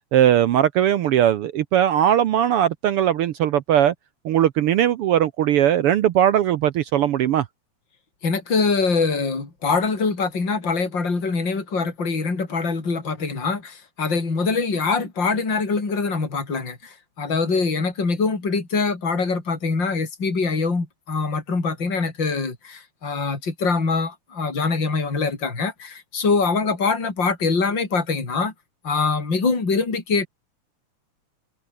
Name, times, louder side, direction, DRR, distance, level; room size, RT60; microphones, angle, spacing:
voice 1, 0.1-3.9 4.2-7.4, right 10 dB, 70° right, 1.4 m, -19 dB
voice 2, 8.2-28.5 28.8-30.3, left 4 dB, 35° left, 5.3 m, -24 dB
omnidirectional pair, 3.4 m